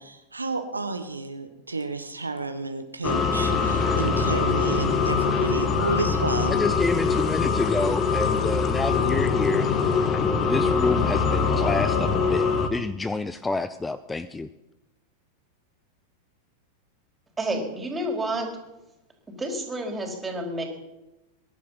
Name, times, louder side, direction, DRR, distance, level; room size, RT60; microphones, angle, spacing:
voice 1, 0.0-6.7, right 3 dB, 80° right, 8 dB, 1.3 m, -31 dB
sound 1, 3.0-12.7, left 5 dB, 30° left, 1.7 m, -23 dB
voice 2, 6.5-9.9 10.2-14.5, left 3 dB, 10° left, 14 dB, 0.6 m, -29 dB
voice 3, 17.4-18.5 19.4-20.6, right 1 dB, 15° right, 2 dB, 4.2 m, -29 dB
22.0 x 11.0 x 5.8 m, 0.97 s
figure-of-eight pair, 90°, 0 cm